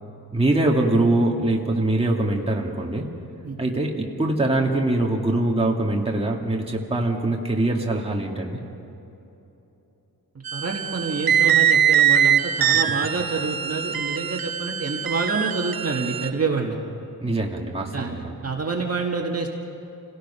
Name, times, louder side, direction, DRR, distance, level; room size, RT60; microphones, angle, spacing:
voice 1, 0.3-3.1 3.6-8.6 17.2-18.3, right 2 dB, 15° right, -1 dB, 2.0 m, -23 dB
voice 2, 10.5-16.8 17.9-19.6, right 4 dB, 45° right, 0 dB, 1.9 m, -27 dB
sound 1, 10.5-16.3, right 9 dB, 80° right, 1.0 m, -22 dB
28.0 x 17.5 x 5.6 m, 3.0 s
wide cardioid pair, 135°, 36 cm